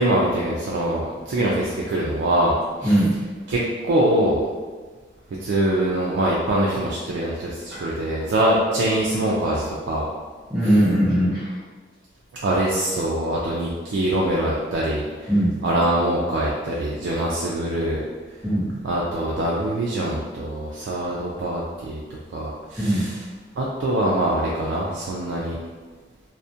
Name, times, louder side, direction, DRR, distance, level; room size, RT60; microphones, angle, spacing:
voice 1, 0.0-2.6 2.8-3.0 3.5-4.4 5.4-10.1 12.4-15.3 15.6-18.0 18.8-22.0 22.3-23.2 23.6-25.6, right 1 dB, 80° right, -5 dB, 0.3 m, -23 dB
voice 2, 2.8-3.1 7.7-7.9 10.5-11.5 15.3-15.6 18.4-18.7 22.8-23.1, right 1 dB, 10° right, -15 dB, 0.7 m, -20 dB
2.3 x 2.1 x 2.6 m, 1.4 s
head